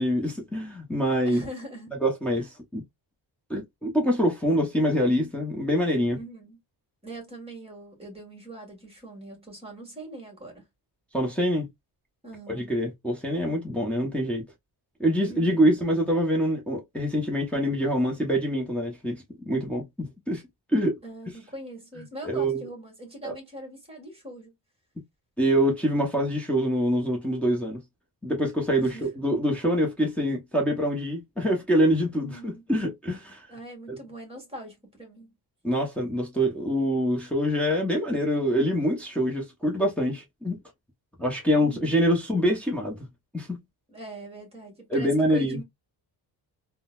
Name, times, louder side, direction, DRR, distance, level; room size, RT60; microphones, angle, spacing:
voice 1, 0.0-1.4 2.0-2.8 3.5-6.2 11.1-11.7 12.5-14.5 15.0-19.2 19.5-20.4 20.7-21.0 22.2-22.6 23.2-23.3 25.4-27.8 28.2-33.5 33.9-34.0 35.6-40.6 41.2-43.1 43.3-43.6 44.9-45.6, equal, 5° left, 0.8 m, -25 dB
voice 2, 1.2-1.9 6.1-6.6 7.0-10.7 12.2-12.7 15.2-15.8 21.0-24.5 28.8-29.1 32.1-32.6 33.5-35.3 41.6-42.0 43.9-45.6, right 1 dB, 15° right, 1.6 m, -42 dB
3.7 x 2.2 x 2.3 m
cardioid pair, 140°, 42 cm